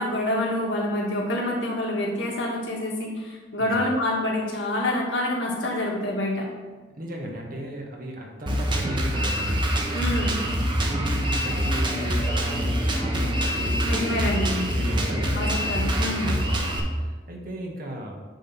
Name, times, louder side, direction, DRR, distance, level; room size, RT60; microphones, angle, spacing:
voice 1, 0.0-6.5 9.9-10.4 13.8-14.6 15.3-16.3, left 1 dB, 80° left, -3 dB, 2.0 m, -27 dB
voice 2, 3.6-3.9 6.9-9.6 10.1-10.5 10.8-14.1 14.7-15.5 16.1-18.1, right 1 dB, 50° right, 0 dB, 1.5 m, -35 dB
Drum kit, 8.5-16.8, equal, 25° right, 1.0 m, -25 dB
9.1 x 3.8 x 6.1 m, 1.3 s
head